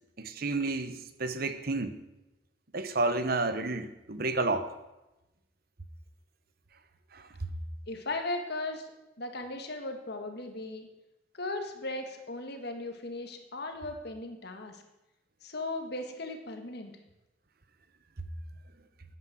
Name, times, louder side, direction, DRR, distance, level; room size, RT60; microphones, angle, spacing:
voice 1, 0.2-1.9 2.7-4.7 7.1-7.3, right 3 dB, 50° right, 10 dB, 1.0 m, -31 dB
voice 2, 7.9-8.9 9.2-10.9 11.3-14.8 15.4-16.9, left 2 dB, 50° left, 5 dB, 1.7 m, -37 dB
9.8 x 9.8 x 7.6 m, 0.97 s
head